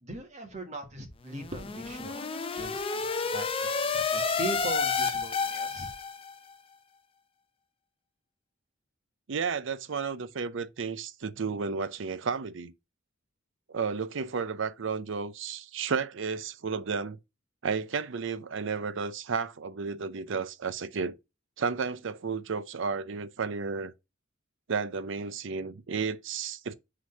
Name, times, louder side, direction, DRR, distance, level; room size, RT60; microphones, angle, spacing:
voice 1, 0.0-5.9, right 1 dB, 35° right, 1.7 m, -40 dB
sound 1, 1.3-6.3, left 5 dB, 30° left, 0.6 m, -30 dB
voice 2, 9.3-12.7 13.7-17.2 17.6-21.2 21.6-23.9 24.7-26.7, right 5 dB, 65° right, 0.6 m, -32 dB
6.1 x 3.9 x 5.5 m
head